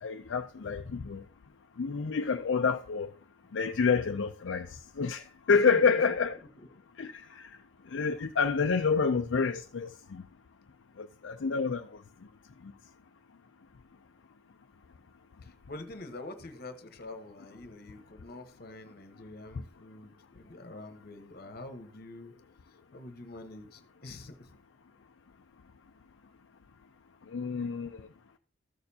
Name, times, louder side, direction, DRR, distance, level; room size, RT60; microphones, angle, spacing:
voice 1, 0.0-1.2 1.8-3.1 3.5-4.7 5.0-5.2 5.5-6.4 7.0-7.4 7.9-10.2 11.0-11.8 27.3-27.9, left 5 dB, 75° left, 0.5 m, -28 dB
voice 2, 5.5-6.0 6.5-6.7 15.4-22.4 22.9-24.5, left 2 dB, 55° left, 1.1 m, -46 dB
14.0 x 6.6 x 2.8 m
head